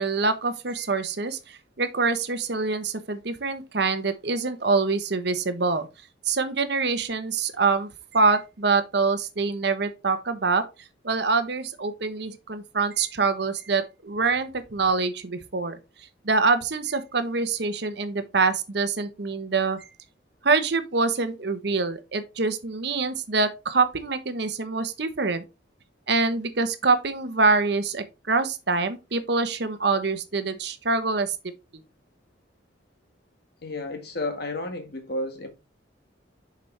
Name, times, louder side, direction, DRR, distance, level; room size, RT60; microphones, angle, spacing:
voice 1, 0.0-5.9 6.2-10.6 11.0-15.8 16.2-19.9 20.4-25.4 26.1-31.8, right 4 dB, 60° right, 0.9 m, -25 dB
voice 2, 33.6-35.5, left 2 dB, 55° left, 1.6 m, -32 dB
6.8 x 5.2 x 3.3 m
head